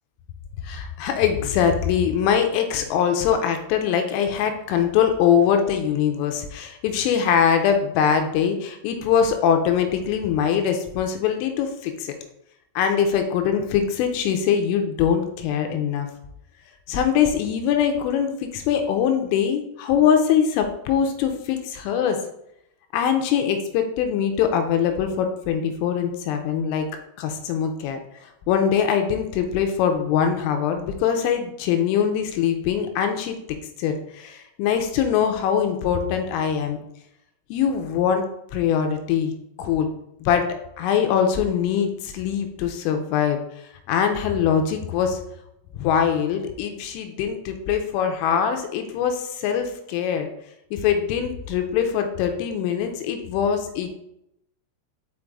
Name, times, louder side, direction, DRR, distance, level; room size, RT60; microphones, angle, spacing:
voice 1, 0.6-12.1 12.8-16.1 16.9-22.2 22.9-26.9 27.2-28.0 28.5-33.4 33.8-36.8 37.5-38.3 38.5-39.3 39.6-39.9 40.2-40.5 40.8-43.4 43.9-45.2 45.7-50.3 50.7-53.9, left 8 dB, 85° left, 5 dB, 3.2 m, -22 dB
6.5 x 5.3 x 3.5 m, 0.80 s
omnidirectional pair, 5.8 m